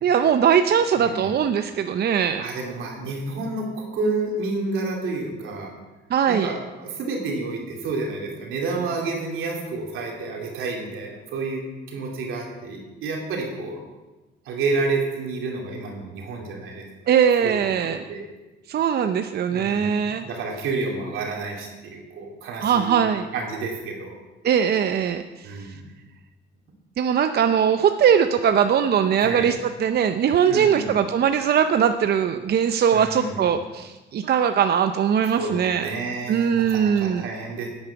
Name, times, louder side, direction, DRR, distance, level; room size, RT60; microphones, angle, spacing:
voice 1, 0.0-2.5 6.1-6.5 17.1-18.0 18.7-20.2 22.6-23.3 24.4-25.7 27.0-35.9 36.3-37.3, right 8 dB, 55° right, 8 dB, 0.6 m, -21 dB
voice 2, 1.0-1.3 2.4-5.7 6.3-11.6 11.9-13.8 14.4-17.1 17.4-18.2 19.5-23.0 23.3-24.1 25.4-25.9 29.2-29.5 30.5-31.0 32.9-33.5 35.3-37.7, right 3 dB, 85° right, 0 dB, 2.8 m, -30 dB
10.5 x 8.7 x 5.9 m, 1.1 s
cardioid pair, 90°, 20 cm